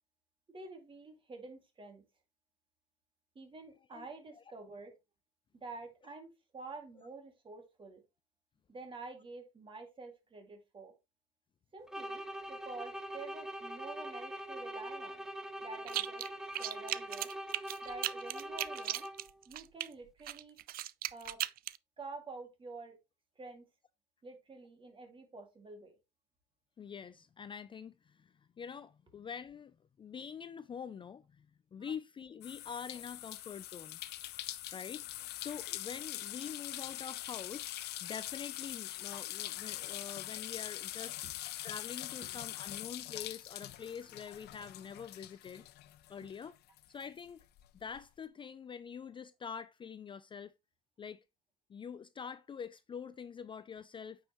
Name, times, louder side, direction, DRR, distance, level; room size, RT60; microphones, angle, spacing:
voice 1, 0.5-2.0 3.3-4.9 5.5-8.0 8.7-10.9 11.7-15.2 15.6-16.3 16.6-17.3 17.8-19.1 19.5-20.6 21.1-21.4 22.0-23.0 23.4-23.6 24.2-26.0 31.8-31.9, right 3 dB, 30° right, 2.3 m, -49 dB
sound 1, 11.9-19.4, right 1 dB, 5° right, 0.9 m, -43 dB
sound 2, 15.9-16.3 16.5-19.9 20.3-21.8, right 14 dB, 60° right, 0.4 m, -37 dB
voice 2, 26.8-34.0 34.7-35.1 35.3-37.7 38.0-41.2 41.6-45.6 46.1-46.6 46.9-47.4 47.8-50.5 51.0-51.2 51.7-54.2, left 7 dB, 30° left, 0.4 m, -45 dB
sound 3, 32.4-46.4 46.8-48.0, left 15 dB, 75° left, 0.6 m, -43 dB
8.9 x 5.4 x 3.0 m
cardioid pair, 110°, 17 cm